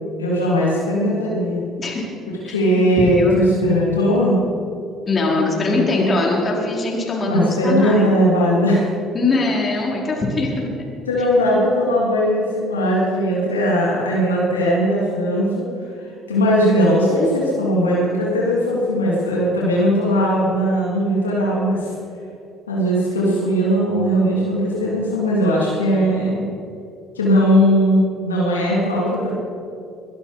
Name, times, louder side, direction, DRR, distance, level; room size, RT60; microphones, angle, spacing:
voice 1, 0.2-1.6 2.5-4.4 5.6-6.1 7.3-8.8 11.1-15.6 16.0-21.9 22.7-26.4 27.2-29.3, equal, 90° left, -5 dB, 2.9 m, -19 dB
voice 2, 2.4-2.9 3.2-3.5 5.1-8.1 9.1-10.7, left 2 dB, 35° left, -2 dB, 4.8 m, -22 dB
22.0 x 12.5 x 5.1 m, 2.6 s
hypercardioid pair, 55°, 0 cm